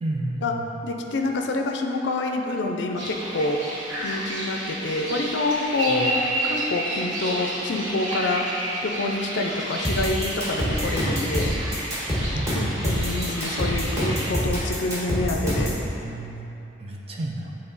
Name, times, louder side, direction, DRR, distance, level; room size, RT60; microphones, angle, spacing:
voice 1, 0.0-0.8 5.9-6.1 12.3-13.1 16.0-16.5 16.8-17.5, right 2 dB, 30° right, -2 dB, 0.5 m, -32 dB
voice 2, 0.8-3.6 4.0-8.4 8.8-11.6 12.5-15.8, left 2 dB, 70° left, 2 dB, 0.4 m, -27 dB
sound 1, 3.0-14.3, right 1 dB, 90° right, 1.1 m, -31 dB
sound 2, 9.8-15.8, equal, 15° right, 1.4 m, -25 dB
8.0 x 3.3 x 4.0 m, 2.9 s
head